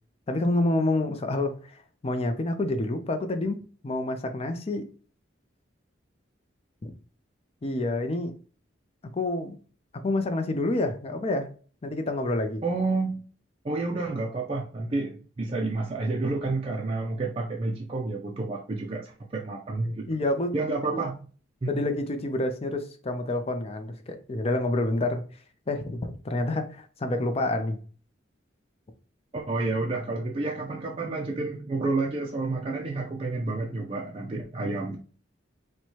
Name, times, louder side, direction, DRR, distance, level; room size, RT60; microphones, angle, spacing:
voice 1, 0.3-3.6 3.8-4.9 6.8-6.9 7.6-8.3 9.1-9.6 9.9-11.5 11.8-12.6 20.1-20.6 20.9-21.0 21.7-25.2 25.7-27.8, left 2 dB, 30° left, 0.5 m, -28 dB
voice 2, 12.6-13.2 13.6-20.1 20.5-21.2 21.6-21.9 29.3-35.0, right 3 dB, 30° right, 0.4 m, -30 dB
4.5 x 2.2 x 2.8 m
head